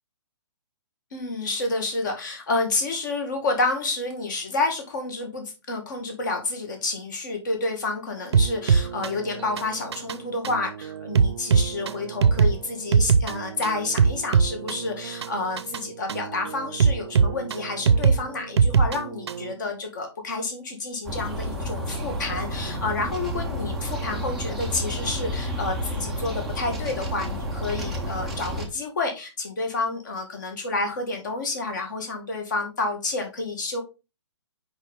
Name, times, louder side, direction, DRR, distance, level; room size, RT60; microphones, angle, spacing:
voice 1, 1.1-33.8, left 3 dB, 40° left, 4 dB, 2.0 m, -29 dB
sound 1, 8.3-19.5, right 6 dB, 65° right, 0.6 m, -23 dB
sound 2, 21.0-28.7, equal, ahead, 0.5 m, -30 dB
6.2 x 5.2 x 3.5 m, 0.28 s
hypercardioid pair, 175°, 15 cm